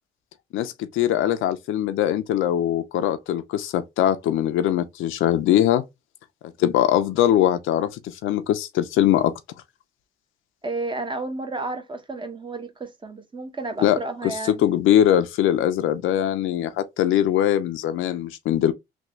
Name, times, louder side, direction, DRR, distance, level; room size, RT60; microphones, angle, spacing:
voice 1, 0.5-5.8 6.6-9.3 13.8-18.7, left 11 dB, 85° left, 0.5 m, -21 dB
voice 2, 10.6-14.6, right 2 dB, 25° right, 0.9 m, -32 dB
3.5 x 2.4 x 2.9 m
cardioid pair, 90°, 20 cm